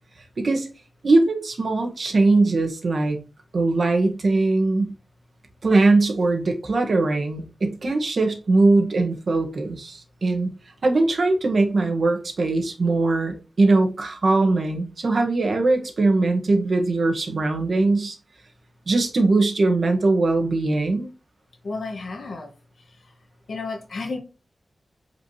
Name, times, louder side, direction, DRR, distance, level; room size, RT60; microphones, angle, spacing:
voice 1, 0.4-0.7 1.0-3.2 3.5-4.9 5.6-10.5 10.8-18.2 18.9-21.1, right 3 dB, 55° right, 1.7 m, -21 dB
voice 2, 21.6-22.5 22.8-23.1 23.5-24.2, left 3 dB, 65° left, 1.9 m, -32 dB
8.7 x 5.0 x 3.1 m
wide cardioid pair, 150°, 0 cm